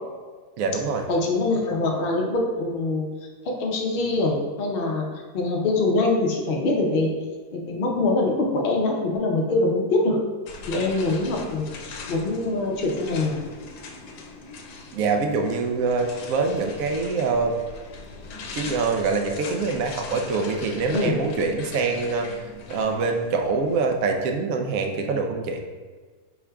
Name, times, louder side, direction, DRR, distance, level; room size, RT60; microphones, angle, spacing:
voice 1, 0.6-1.1 14.9-17.6 18.5-22.3 22.7-25.6, right 4 dB, 70° right, 4 dB, 0.9 m, -24 dB
voice 2, 1.1-3.1 3.4-5.0 5.3-7.1 7.5-10.2 10.7-13.4 20.9-21.1, left 2 dB, 60° left, 0 dB, 0.6 m, -24 dB
sound 1, 10.5-24.0, left 3 dB, 80° left, 1.1 m, -40 dB
4.7 x 4.6 x 2.3 m, 1.4 s
omnidirectional pair, 1.8 m